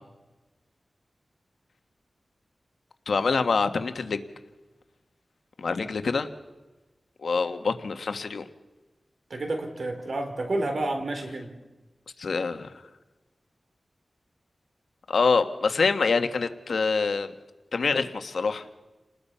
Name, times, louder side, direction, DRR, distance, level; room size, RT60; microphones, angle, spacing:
voice 1, 3.1-4.2 5.6-6.3 7.2-8.4 12.2-12.7 15.1-17.3 17.7-18.7, left 4 dB, 85° left, 8 dB, 1.5 m, -25 dB
voice 2, 9.3-11.6, right 2 dB, 65° right, 5 dB, 3.8 m, -30 dB
29.5 x 20.0 x 5.7 m, 1.1 s
wide cardioid pair, 90°, 0 cm